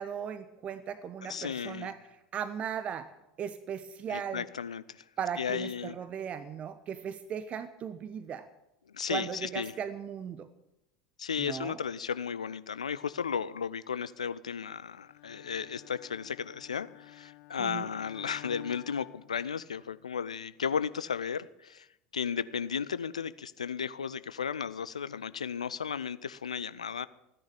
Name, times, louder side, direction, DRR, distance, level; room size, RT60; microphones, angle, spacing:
voice 1, 0.0-2.0 2.3-3.1 3.4-4.4 5.2-8.5 9.1-10.5 11.4-11.8 17.6-17.9, right 8 dB, 35° right, 13 dB, 1.0 m, -37 dB
voice 2, 1.2-1.9 4.1-5.0 5.4-6.0 8.9-9.7 11.2-21.9 22.1-27.1, left 7 dB, 80° left, 16 dB, 0.6 m, -34 dB
Bowed string instrument, 15.0-20.0, left 19 dB, 55° left, 1.1 m, -52 dB
16.0 x 10.5 x 8.7 m, 0.89 s
figure-of-eight pair, 75°, 4 cm